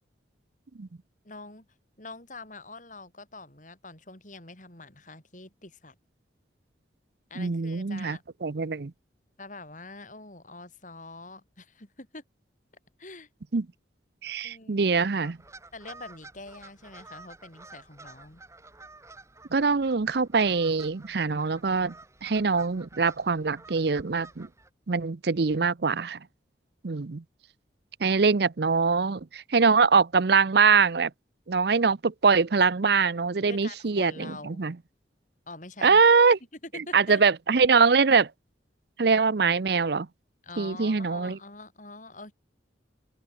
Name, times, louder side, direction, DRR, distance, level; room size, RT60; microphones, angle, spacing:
voice 1, 1.2-1.7 2.0-6.0 7.3-8.2 9.4-12.2 13.0-13.3 14.4-14.8 15.7-18.4 33.5-34.6 35.5-36.0 36.6-37.2 40.4-42.3, left 3 dB, 40° left, 6.9 m, -45 dB
voice 2, 7.4-8.9 13.5-13.7 14.2-15.4 19.5-21.9 22.2-24.5 24.9-26.2 26.8-27.2 28.0-31.1 31.5-34.7 35.8-36.4 36.9-38.3 39.0-40.1 40.6-41.4, right 5 dB, 55° right, 0.6 m, -23 dB
sound 1, 15.2-24.7, right 3 dB, 15° right, 6.7 m, -51 dB
head